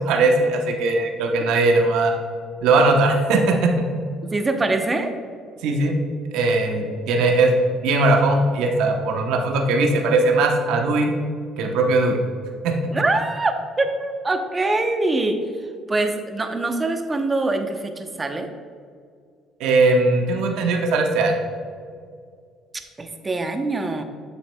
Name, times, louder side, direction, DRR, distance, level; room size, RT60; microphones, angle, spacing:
voice 1, 0.1-2.1 2.6-3.9 5.6-5.9 6.3-7.5 7.8-11.1 11.6-12.2 12.6-12.8 19.6-21.3, right 3 dB, 80° right, 2 dB, 0.9 m, -19 dB
voice 2, 4.2-5.1 12.9-15.4 15.9-18.5 23.0-24.0, right 2 dB, 25° right, 6 dB, 0.8 m, -24 dB
8.3 x 7.3 x 2.3 m, 2.1 s
supercardioid pair, 75°, 0 cm